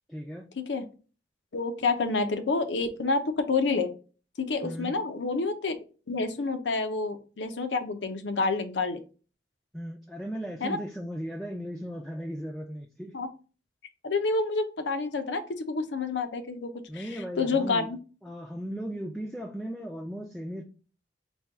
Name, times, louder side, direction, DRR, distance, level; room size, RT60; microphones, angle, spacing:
voice 1, 0.1-0.5 4.6-5.0 9.7-13.1 16.9-17.9 18.2-20.6, equal, ahead, 0.3 m, -37 dB
voice 2, 1.5-3.9 4.4-5.8 6.1-9.0 10.6-10.8 13.1-13.3 14.0-17.0 17.4-18.0, left 3 dB, 90° left, 0.6 m, -28 dB
4.3 x 2.3 x 3.4 m
head